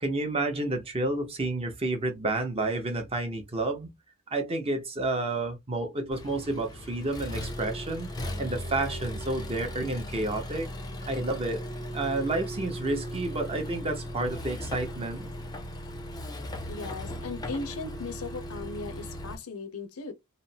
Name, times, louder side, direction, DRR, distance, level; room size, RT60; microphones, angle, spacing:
voice 1, 0.0-3.9 4.3-8.1 8.4-10.7 11.1-11.7 11.9-15.3, right 2 dB, 25° right, 0.7 m, -30 dB
Accelerating revving vroom, 6.1-19.3, equal, 20° left, 0.5 m, -37 dB
voice 2, 16.7-20.1, left 3 dB, 75° left, 0.6 m, -37 dB
3.1 x 2.0 x 2.7 m
head